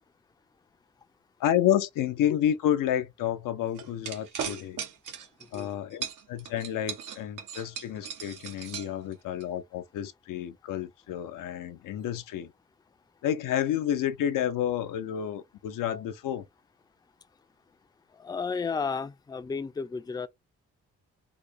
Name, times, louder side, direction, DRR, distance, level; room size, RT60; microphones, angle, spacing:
voice 1, 1.4-4.8 5.5-12.5 13.2-16.4, left 10 dB, 85° left, 0.6 m, -30 dB
sound 1, 3.8-5.7 6.0-9.4, right 8 dB, 80° right, 0.9 m, -38 dB
voice 2, 18.1-20.3, left 5 dB, 15° left, 0.4 m, -33 dB
3.8 x 2.0 x 3.5 m
cardioid pair, 75°, 31 cm